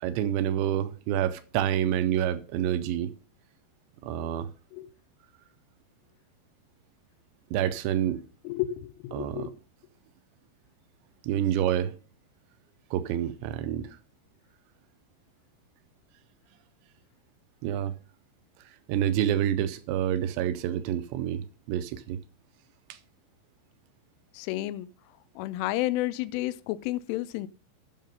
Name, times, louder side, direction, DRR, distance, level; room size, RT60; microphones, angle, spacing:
voice 1, 0.0-3.1 4.0-4.5 7.5-8.2 9.1-9.5 11.2-12.0 12.9-13.9 17.6-17.9 18.9-22.2 22.9-23.0, right 10 dB, 80° right, 2.7 m, -28 dB
voice 2, 8.4-9.5 24.3-24.9 25.4-27.5, left 15 dB, 90° left, 3.1 m, -31 dB
9.2 x 6.5 x 5.4 m
omnidirectional pair, 5.5 m